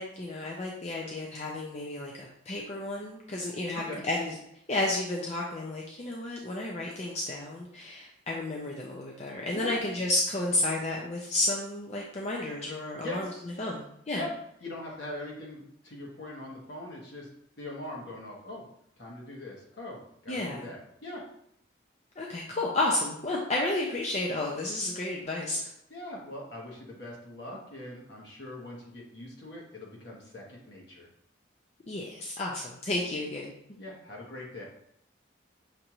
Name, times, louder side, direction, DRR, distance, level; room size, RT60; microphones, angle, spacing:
voice 1, 0.0-4.3 4.7-13.3 13.6-14.2 20.3-20.7 22.2-25.6 31.9-33.5, left 2 dB, 35° left, -2 dB, 0.5 m, -32 dB
voice 2, 13.0-13.5 14.1-14.3 14.6-17.3 17.6-18.6 19.0-20.0 20.2-21.2 25.9-31.1 33.8-34.6, left 1 dB, 65° left, -3 dB, 1.3 m, -41 dB
6.5 x 2.5 x 2.9 m, 0.72 s
head